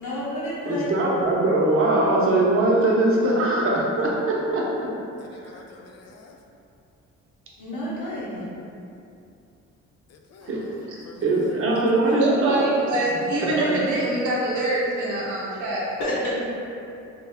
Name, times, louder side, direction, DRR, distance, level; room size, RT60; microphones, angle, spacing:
voice 1, 0.0-0.9 7.6-8.5 16.0-16.4, left 1 dB, 85° left, 0.9 m, -29 dB
voice 2, 0.7-4.9 10.5-10.6 11.2-12.6 13.6-13.7, right 2 dB, 45° right, 0.8 m, -21 dB
voice 3, 5.3-6.4 10.1-10.7 11.0-11.5, left 4 dB, 60° left, 0.5 m, -48 dB
voice 4, 12.1-15.9, right 2 dB, 75° right, 0.9 m, -25 dB
3.3 x 2.2 x 3.4 m
cardioid pair, 90°, 30 cm